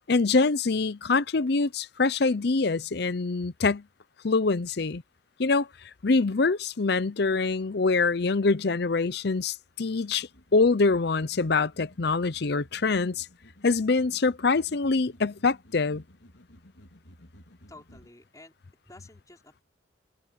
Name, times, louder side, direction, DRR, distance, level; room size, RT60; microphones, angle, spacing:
voice 1, 0.1-3.8 4.2-5.0 5.4-5.7 6.0-13.3 13.6-16.0, left 3 dB, 60° left, 0.6 m, -25 dB
sound 1, 9.7-18.1, equal, 75° left, 3.6 m, -55 dB
voice 2, 17.7-18.6 18.8-19.6, left 2 dB, 20° left, 4.8 m, -51 dB
head